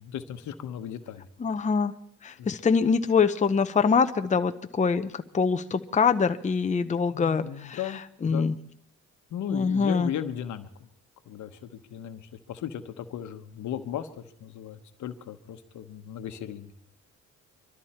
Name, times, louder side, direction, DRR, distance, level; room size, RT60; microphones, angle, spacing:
voice 1, 0.0-1.3 2.4-2.5 7.1-8.5 9.3-10.9 11.2-16.7, left 10 dB, 75° left, 9 dB, 1.1 m, -37 dB
voice 2, 1.4-1.9 2.2-7.8 8.2-8.5 9.5-10.1, left 5 dB, 25° left, 9 dB, 0.7 m, -24 dB
23.0 x 13.0 x 4.4 m, 0.73 s
cardioid pair, 90°, 30 cm